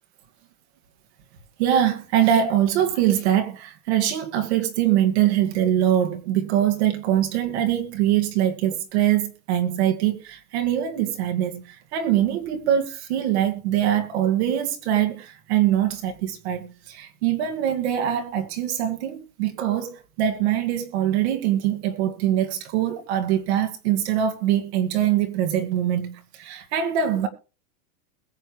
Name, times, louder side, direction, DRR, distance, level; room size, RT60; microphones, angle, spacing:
voice 1, 1.6-27.3, right 10 dB, 45° right, 2.1 m, -23 dB
21.5 x 7.9 x 3.2 m
supercardioid pair, 170°, 45 cm